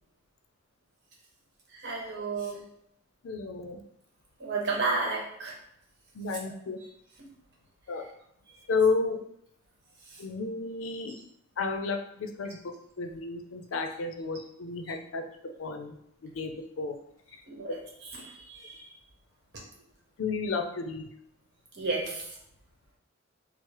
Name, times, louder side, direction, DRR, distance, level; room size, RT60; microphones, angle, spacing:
voice 1, 1.7-2.6 4.4-5.5 10.1-10.2 17.5-17.8 18.1-18.9 21.7-22.3, right 3 dB, 60° right, -2 dB, 1.0 m, -32 dB
voice 2, 3.2-3.8 6.1-6.8 7.9-8.1 8.7-9.2 10.2-11.2 11.6-16.0 16.2-17.0 20.2-21.1, left 4 dB, 85° left, 6 dB, 0.4 m, -32 dB
4.6 x 2.0 x 2.9 m, 0.74 s
head